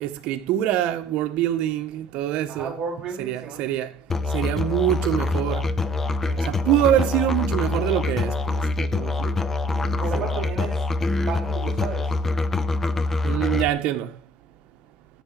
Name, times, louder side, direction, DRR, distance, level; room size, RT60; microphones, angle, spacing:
voice 1, 0.0-2.8 3.2-3.9 4.3-5.6 6.5-8.3 8.8-9.3 10.1-10.2 13.2-14.1, right 12 dB, 60° right, 1.3 m, -24 dB
voice 2, 2.5-3.6 6.2-6.6 9.8-12.1, right 5 dB, 30° right, 3.4 m, -34 dB
Musical instrument, 4.1-13.7, left 3 dB, 15° left, 0.7 m, -25 dB
13.0 x 5.0 x 7.6 m
cardioid pair, 170°, 2 cm